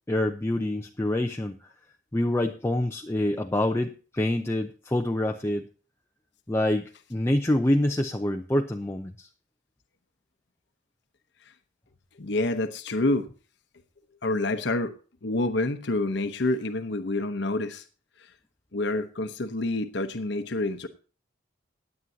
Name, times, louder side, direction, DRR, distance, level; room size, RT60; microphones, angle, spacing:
voice 1, 0.1-1.6 2.1-5.7 6.5-9.3, left 1 dB, 15° left, 4 dB, 0.6 m, -26 dB
voice 2, 12.2-13.3 14.2-14.9 15.2-17.8 18.7-20.9, left 2 dB, 65° left, 7 dB, 1.0 m, -27 dB
17.0 x 9.7 x 2.8 m, 0.37 s
head